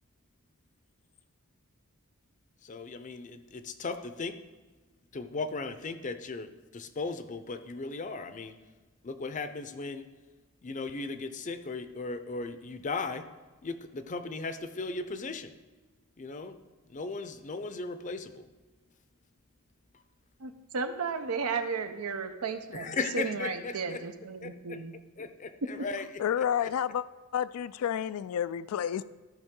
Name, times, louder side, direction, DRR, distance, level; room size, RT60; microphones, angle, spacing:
voice 1, 2.6-4.4 5.1-8.5 9.0-10.1 10.6-13.3 13.6-15.5 16.2-16.6 16.9-18.4 22.7-24.0 24.4-24.8 25.2-25.3 25.7-26.1, left 3 dB, 35° left, 10 dB, 0.5 m, -36 dB
voice 2, 20.4-24.8, right 5 dB, 85° right, 8 dB, 0.8 m, -34 dB
voice 3, 26.2-27.0 27.3-29.0, left 9 dB, 85° left, 17 dB, 0.3 m, -30 dB
13.5 x 5.3 x 3.7 m, 1.3 s
head